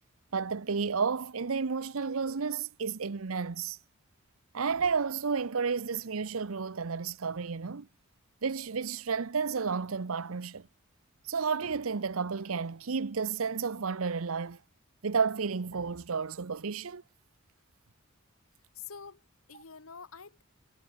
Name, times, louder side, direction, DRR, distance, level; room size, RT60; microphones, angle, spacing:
voice 1, 0.3-3.8 4.5-7.9 8.4-10.7 11.3-14.6 15.0-17.0, right 5 dB, 85° right, 0.8 m, -31 dB
voice 2, 18.7-20.4, left 6 dB, 90° left, 1.4 m, -47 dB
head